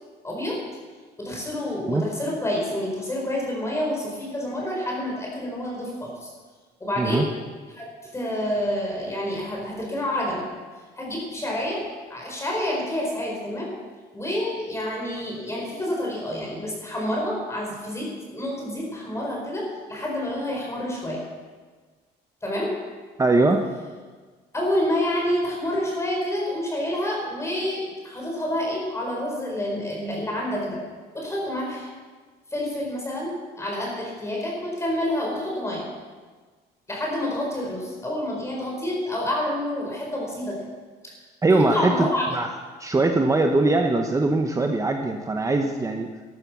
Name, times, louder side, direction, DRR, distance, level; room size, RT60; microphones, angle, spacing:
voice 1, 0.2-0.6 1.2-6.3 6.8-7.3 7.7-10.5 11.0-11.8 12.1-13.7 14.1-21.2 22.4-22.7 24.5-30.8 31.1-31.9 32.5-35.9 36.9-40.7 41.0-41.1 41.5-42.4, left 1 dB, 15° left, -2 dB, 4.9 m, -28 dB
voice 2, 23.2-23.6 41.4-42.1 42.3-42.5 42.8-46.1, right 2 dB, 20° right, 4 dB, 1.0 m, -21 dB
13.5 x 12.5 x 6.3 m, 1.4 s
cardioid pair, 110°, 17 cm